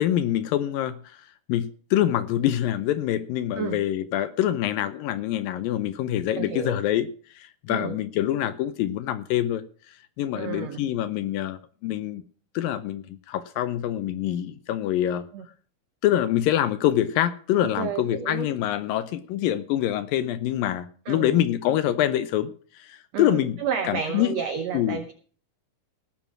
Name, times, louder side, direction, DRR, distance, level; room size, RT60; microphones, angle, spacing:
voice 1, 0.0-12.2 12.5-15.2 16.0-23.6 23.8-24.3 24.7-25.0, left 12 dB, 75° left, 13 dB, 2.2 m, -25 dB
voice 2, 6.4-6.8 7.7-8.0 10.3-10.8 15.3-15.4 17.8-18.5 21.1-21.4 23.1-25.1, right 7 dB, 85° right, 9 dB, 1.5 m, -31 dB
18.0 x 7.3 x 6.0 m, 0.43 s
omnidirectional pair, 4.5 m